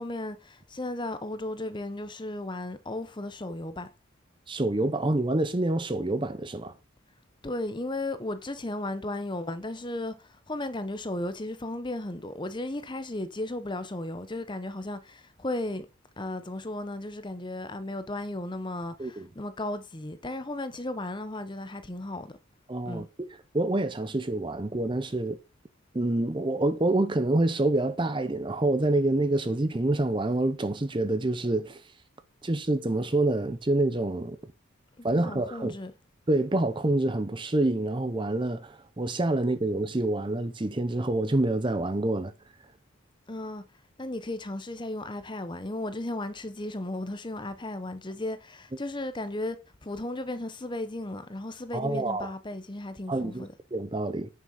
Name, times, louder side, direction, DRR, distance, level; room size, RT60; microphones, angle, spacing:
voice 1, 0.0-3.9 7.4-15.9 16.2-22.4 22.8-23.1 35.0-35.9 43.3-43.6 44.0-53.5, left 1 dB, 20° left, 0.8 m, -35 dB
voice 2, 4.5-6.7 19.0-19.3 22.7-23.3 23.5-25.4 25.9-31.8 32.4-34.4 35.0-35.8 36.3-42.3 51.7-52.3 53.1-54.3, right 2 dB, 20° right, 0.6 m, -27 dB
9.5 x 6.2 x 5.5 m
head